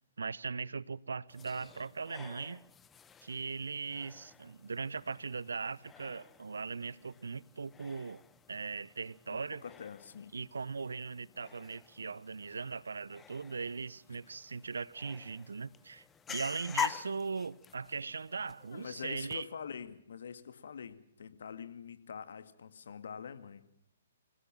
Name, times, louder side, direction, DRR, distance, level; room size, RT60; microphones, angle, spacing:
voice 1, 0.2-2.7 3.2-8.2 8.5-9.6 10.3-19.5, right 4 dB, 80° right, 0.8 m, -39 dB
sound 1, 1.3-19.4, left 8 dB, 15° left, 0.9 m, -46 dB
voice 2, 9.3-10.3 14.1-14.2 18.7-23.6, left 7 dB, 65° left, 2.1 m, -45 dB
27.0 x 16.5 x 7.5 m
figure-of-eight pair, 130°, 0 cm